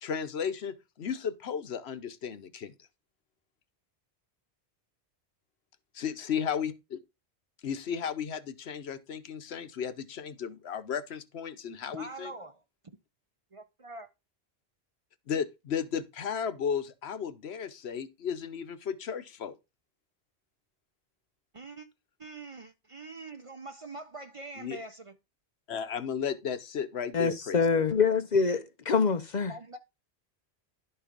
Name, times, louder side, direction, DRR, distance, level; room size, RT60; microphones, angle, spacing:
voice 1, 0.0-2.7 5.9-7.0 7.6-12.3 15.3-19.5 24.6-24.8 25.7-27.6, left 7 dB, 75° left, 1.1 m, -34 dB
voice 2, 11.9-13.0 13.5-14.1 21.5-21.9 22.2-25.2 29.5-29.8, right 3 dB, 35° right, 0.6 m, -44 dB
voice 3, 27.1-29.5, left 5 dB, 50° left, 0.7 m, -25 dB
11.0 x 4.5 x 5.1 m
omnidirectional pair, 1.1 m